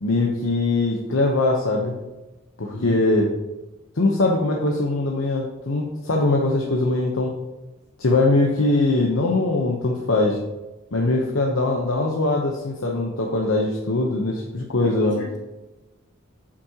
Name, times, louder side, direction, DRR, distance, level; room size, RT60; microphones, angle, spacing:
voice 1, 0.0-1.9 2.6-3.3 4.0-7.3 8.0-10.4 10.9-15.2, left 2 dB, 85° left, -1 dB, 1.0 m, -21 dB
voice 2, 14.8-15.4, left 2 dB, 65° left, -4 dB, 2.9 m, -34 dB
8.6 x 7.4 x 2.9 m, 1.1 s
head